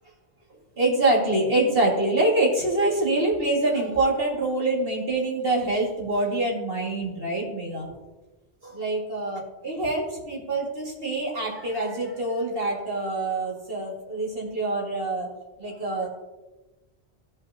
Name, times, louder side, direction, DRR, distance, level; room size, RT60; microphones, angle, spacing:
voice 1, 0.8-7.9 8.7-15.3 15.6-16.1, right 2 dB, 55° right, -3 dB, 2.1 m, -25 dB
16.0 x 5.6 x 2.7 m, 1.1 s
omnidirectional pair, 1.1 m